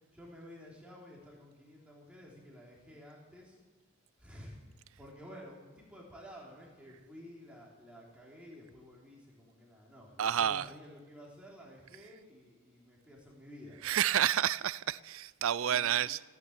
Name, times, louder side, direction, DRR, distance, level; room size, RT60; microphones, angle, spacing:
voice 1, 0.1-3.6 4.2-4.6 5.0-13.8 15.6-16.1, equal, 5° right, 3.5 m, -52 dB
voice 2, 10.2-10.7 13.8-16.2, right 10 dB, 70° right, 0.4 m, -29 dB
16.5 x 9.6 x 8.8 m
head